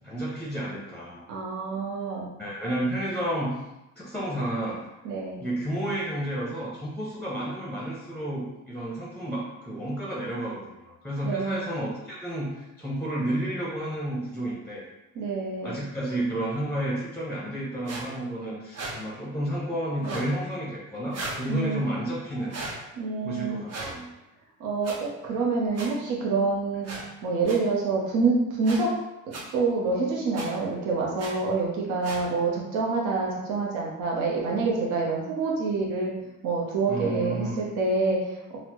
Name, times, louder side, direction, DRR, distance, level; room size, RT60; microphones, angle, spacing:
voice 1, 0.0-1.2 2.4-3.6 4.0-4.8 5.4-14.9 15.6-22.6 23.2-24.1 25.3-25.5 36.9-37.6, right 1 dB, 5° left, -5 dB, 0.6 m, -31 dB
voice 2, 1.3-2.3 5.0-5.4 11.2-11.6 15.1-15.8 21.5-21.8 23.0-23.6 24.6-26.9 27.2-28.9 29.5-36.1 36.4-38.6, right 3 dB, 80° right, -3 dB, 0.8 m, -27 dB
sound 1, 17.8-18.0 18.7-18.9 20.0-20.3 21.1-21.4 22.5-22.7 23.7-23.9 24.8-24.9 25.7-25.9 26.8-27.0 27.4-27.6 28.6-28.8 29.3-29.4 30.3-30.5 31.2-31.3 32.0-32.2, right 2 dB, 50° right, 0.8 m, -35 dB
4.0 x 2.1 x 2.9 m, 0.96 s
cardioid pair, 115°, 32 cm